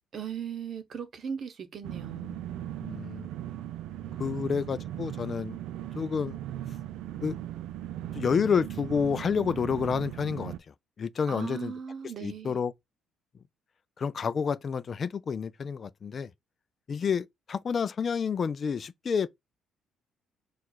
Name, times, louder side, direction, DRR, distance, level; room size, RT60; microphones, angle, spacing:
voice 1, 0.1-2.4 4.3-4.7 11.3-12.6, right 7 dB, 50° right, 0.9 m, -38 dB
sound 1, 1.8-10.6, right 12 dB, 80° right, 0.4 m, -38 dB
voice 2, 2.8-3.3 4.2-5.6 5.9-6.4 7.2-7.4 8.1-11.7 12.2-12.7 14.0-16.3 16.9-19.3, left 6 dB, 40° left, 0.3 m, -29 dB
4.5 x 2.4 x 3.9 m
cardioid pair, 100°, 0 cm